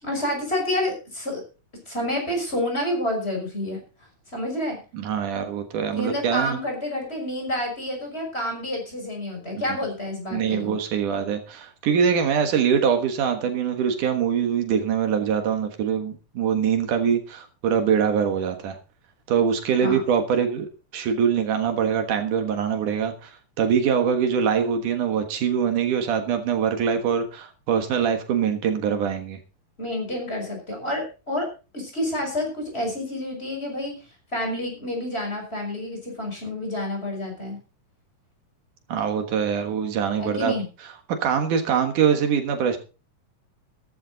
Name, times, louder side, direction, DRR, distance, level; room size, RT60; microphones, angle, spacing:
voice 1, 0.0-1.4 1.9-3.8 4.3-4.8 5.9-10.8 19.8-20.0 29.8-31.5 31.7-33.9 34.3-37.6 40.2-40.7, left 1 dB, 15° left, 2 dB, 5.9 m, -29 dB
voice 2, 4.9-6.6 10.3-18.8 19.3-29.4 38.9-40.5 41.2-42.8, right 7 dB, 75° right, 6 dB, 3.0 m, -23 dB
14.0 x 12.5 x 4.0 m, 0.34 s
omnidirectional pair, 3.7 m